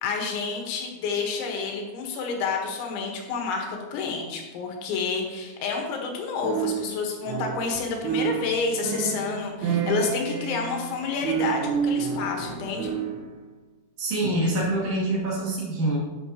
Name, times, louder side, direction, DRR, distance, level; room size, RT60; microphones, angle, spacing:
voice 1, 0.0-12.9, left 4 dB, 75° left, 2 dB, 3.5 m, -29 dB
sound 1, 6.4-7.8 8.0-13.3, right 7 dB, 80° right, 2.5 m, -29 dB
voice 2, 14.0-16.0, right 1 dB, 45° right, -6 dB, 3.4 m, -25 dB
10.5 x 9.0 x 2.9 m, 1.2 s
omnidirectional pair, 5.4 m